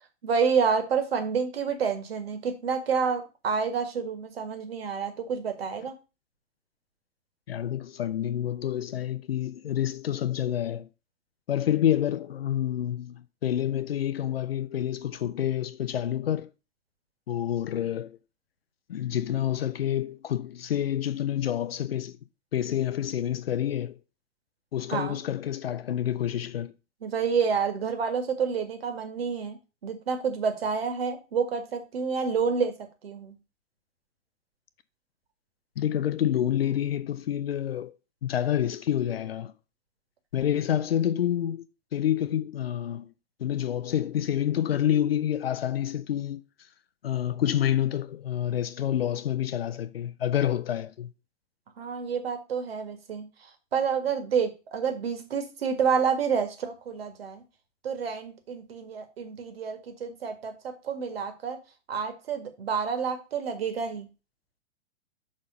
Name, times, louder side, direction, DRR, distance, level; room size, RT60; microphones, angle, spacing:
voice 1, 0.2-5.9 24.9-25.2 27.0-29.6 29.8-32.7 33.0-33.3 51.8-53.3 53.7-57.4 57.8-60.5 60.8-61.6 61.9-64.1, right 6 dB, 55° right, 1.9 m, -28 dB
voice 2, 7.5-10.9 11.5-16.5 17.3-18.2 18.9-22.2 22.5-24.0 24.7-26.7 35.8-37.9 38.2-39.5 40.3-41.7 41.9-43.1 43.4-46.4 47.0-51.1, left 10 dB, 55° left, 0.8 m, -28 dB
6.3 x 4.3 x 6.3 m
figure-of-eight pair, 110°, 36 cm